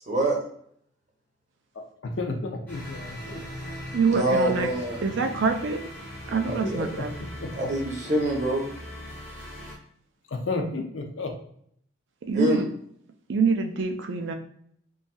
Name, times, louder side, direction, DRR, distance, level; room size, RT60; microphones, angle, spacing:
voice 1, 0.1-0.4 4.1-5.0 6.5-6.9 7.5-8.7 12.3-12.6, right 1 dB, 35° right, 0 dB, 0.7 m, -25 dB
voice 2, 1.8-3.4 6.6-7.7 10.3-11.3, left 3 dB, 65° left, 4 dB, 0.5 m, -33 dB
sound 1, 2.7-9.8, equal, 10° left, 0.8 m, -40 dB
voice 3, 3.9-4.7 5.0-5.8 6.3-7.1 12.3-12.7 13.3-14.3, right 4 dB, 60° right, 6 dB, 0.4 m, -25 dB
3.1 x 2.6 x 2.2 m, 0.65 s
head